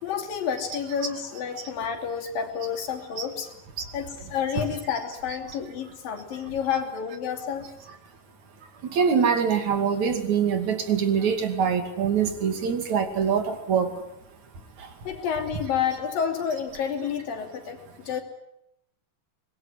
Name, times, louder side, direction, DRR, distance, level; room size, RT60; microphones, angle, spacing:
voice 1, 0.0-3.5 3.9-7.7 15.0-18.2, left 7 dB, 85° left, 4 dB, 4.6 m, -30 dB
voice 2, 8.9-13.9, right 7 dB, 60° right, 7 dB, 3.7 m, -24 dB
24.5 x 20.5 x 9.9 m, 0.79 s
omnidirectional pair, 3.9 m